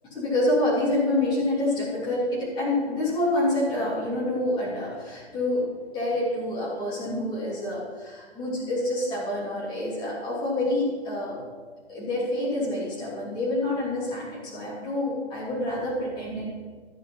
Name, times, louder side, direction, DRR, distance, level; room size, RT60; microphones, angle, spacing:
voice 1, 0.1-5.6 5.9-11.4 11.9-16.5, left 1 dB, 15° left, -9 dB, 3.4 m, -27 dB
13.0 x 6.4 x 5.9 m, 1.5 s
figure-of-eight pair, 125°, 32 cm